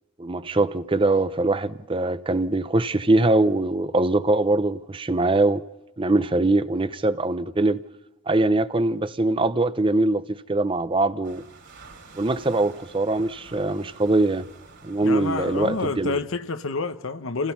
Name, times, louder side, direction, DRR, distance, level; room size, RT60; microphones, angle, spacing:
voice 1, 0.2-5.6 6.0-7.8 8.3-11.4 12.2-14.5 14.8-16.2, right 2 dB, 25° right, 0.6 m, -22 dB
sound 1, 11.2-16.3, right 4 dB, 55° right, 3.5 m, -49 dB
voice 2, 15.0-17.5, left 3 dB, 75° left, 0.9 m, -28 dB
28.5 x 16.0 x 5.6 m
head